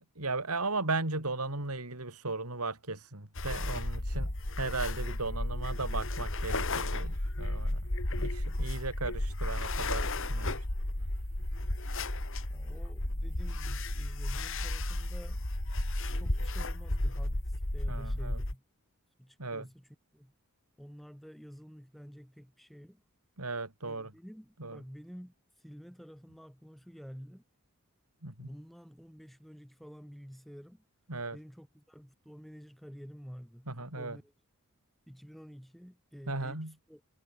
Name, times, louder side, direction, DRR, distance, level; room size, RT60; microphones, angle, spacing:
voice 1, 0.0-4.3 4.6-7.8 8.2-10.7 17.9-18.4 19.4-19.7 23.4-24.1 24.6-24.8 28.2-28.5 31.1-31.4 33.7-34.2 36.3-36.7, right 3 dB, 85° right, 4.0 m, -36 dB
sound 1, 3.4-18.5, left 1 dB, 60° left, 2.9 m, -33 dB
voice 2, 12.5-15.4 16.1-18.6 19.2-20.3 20.8-23.0 23.8-27.4 28.4-30.8 31.3-34.3 35.1-37.0, equal, ahead, 6.5 m, -50 dB
head